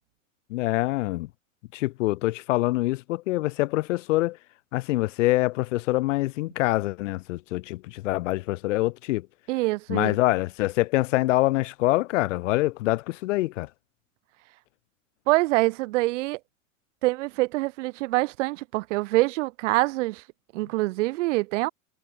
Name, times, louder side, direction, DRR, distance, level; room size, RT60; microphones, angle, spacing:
voice 1, 0.5-1.3 1.7-4.4 4.7-9.3 9.9-13.7, left 18 dB, 70° left, 3.9 m, -25 dB
voice 2, 9.5-10.2 15.3-16.4 17.0-20.2 20.5-21.7, right 20 dB, 65° right, 7.2 m, -25 dB
hypercardioid pair, 120°, 39 cm